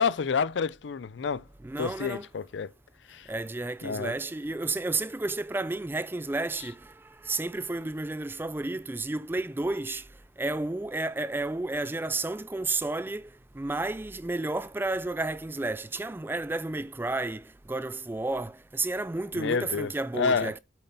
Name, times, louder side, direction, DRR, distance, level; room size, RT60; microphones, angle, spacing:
voice 1, 0.0-1.4 1.8-2.7 3.1-3.3 3.8-4.1 19.3-20.5, left 5 dB, 85° left, 0.5 m, -29 dB
voice 2, 1.6-2.3 3.3-10.1 10.4-13.3 13.5-20.6, right 2 dB, 10° right, 0.3 m, -31 dB
7.9 x 5.4 x 4.0 m
head